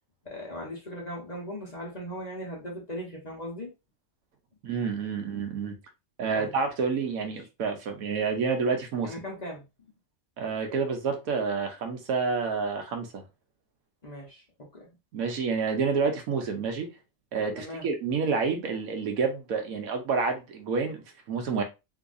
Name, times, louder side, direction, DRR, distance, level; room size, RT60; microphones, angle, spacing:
voice 1, 0.2-3.7 6.3-6.5 9.0-9.6 14.0-14.9 17.6-17.9, equal, 35° left, 0.9 m, -38 dB
voice 2, 4.6-5.8 6.2-9.2 10.4-13.2 15.1-16.9 17.3-21.6, right 5 dB, 85° right, 1.2 m, -29 dB
3.8 x 2.7 x 2.5 m
omnidirectional pair, 1.5 m